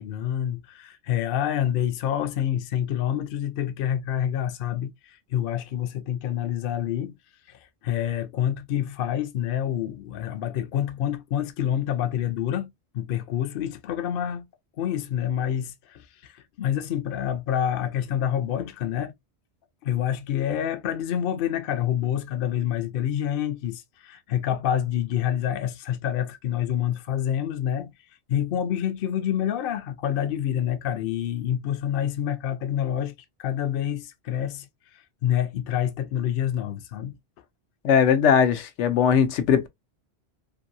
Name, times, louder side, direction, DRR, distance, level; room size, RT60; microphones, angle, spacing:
voice 1, 0.0-7.2 7.5-14.5 14.8-19.1 19.8-27.9 28.3-37.2, left 10 dB, 60° left, 0.7 m, -27 dB
voice 2, 37.8-39.7, left 7 dB, 85° left, 0.9 m, -19 dB
2.6 x 2.6 x 2.6 m
omnidirectional pair, 1.2 m